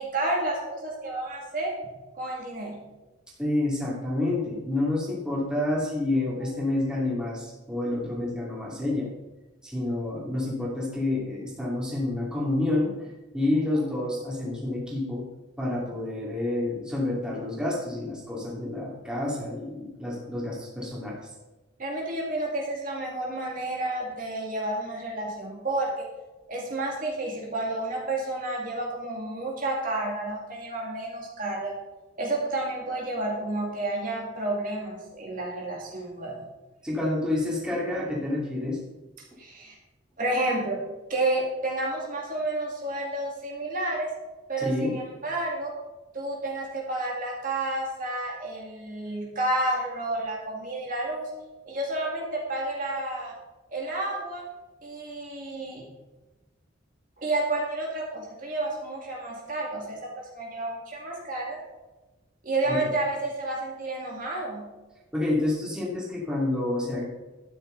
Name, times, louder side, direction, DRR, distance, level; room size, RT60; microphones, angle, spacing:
voice 1, 0.0-1.7 2.2-2.8 21.8-26.1 26.5-31.7 32.2-36.4 39.4-39.7 40.2-40.8 41.1-44.1 44.5-45.7 46.1-51.3 51.6-53.3 53.7-54.4 54.8-55.9 57.2-60.0 60.3-61.6 62.4-64.7, right 2 dB, 45° right, -2 dB, 2.2 m, -30 dB
voice 2, 3.4-9.1 9.6-13.1 13.3-15.2 15.6-21.2 36.8-38.8 44.6-45.0 62.7-62.8 65.1-67.0, left 2 dB, 5° right, -5 dB, 2.6 m, -28 dB
12.0 x 9.5 x 3.9 m, 1.1 s
head